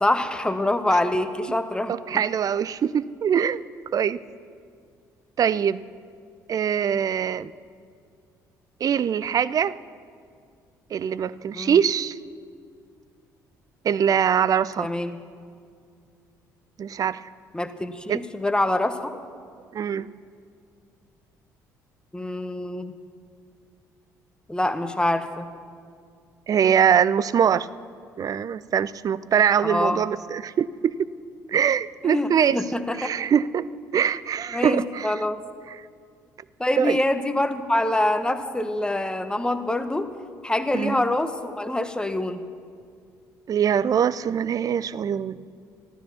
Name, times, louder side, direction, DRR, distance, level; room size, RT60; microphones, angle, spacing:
voice 1, 0.0-1.9 11.5-11.8 14.8-15.2 17.5-19.1 22.1-23.0 24.5-25.5 29.6-30.0 32.0-33.1 34.5-35.4 36.6-40.1 40.4-42.4, left 1 dB, 10° left, 9 dB, 1.1 m, -25 dB
voice 2, 1.9-3.7 3.9-4.2 5.4-5.8 6.5-7.5 8.8-9.8 10.9-12.2 13.8-14.9 16.8-17.2 18.1-18.2 19.7-20.1 26.5-27.7 28.2-31.1 31.5-32.6 33.0-33.7 33.9-35.1 35.7-35.8 36.8-37.0 40.7-41.0 43.5-45.4, right 8 dB, 40° right, 18 dB, 0.5 m, -23 dB
14.5 x 13.0 x 7.2 m, 2.2 s
figure-of-eight pair, 50°, 9 cm